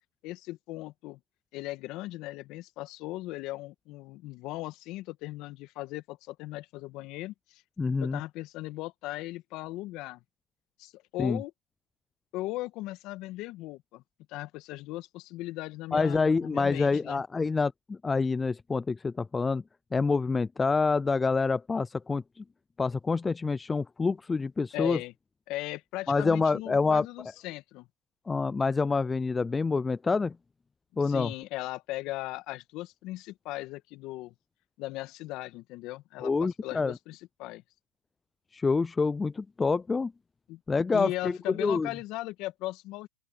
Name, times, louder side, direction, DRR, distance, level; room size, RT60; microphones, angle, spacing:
voice 1, 0.2-1.2 1.5-7.6 8.0-10.2 10.8-11.5 12.3-14.0 14.3-17.2 24.7-25.1 25.5-27.9 31.0-34.3 34.8-37.6 40.5-40.6 40.9-43.1, left 18 dB, 40° left, 1.7 m, -38 dB
voice 2, 7.8-8.2 11.2-11.4 15.9-19.6 19.9-22.4 22.8-25.0 26.1-27.1 28.3-30.4 31.0-31.3 36.2-37.0 38.5-40.1 40.7-41.9, left 4 dB, 10° left, 0.3 m, -27 dB
open air
hypercardioid pair, 130°, 0 cm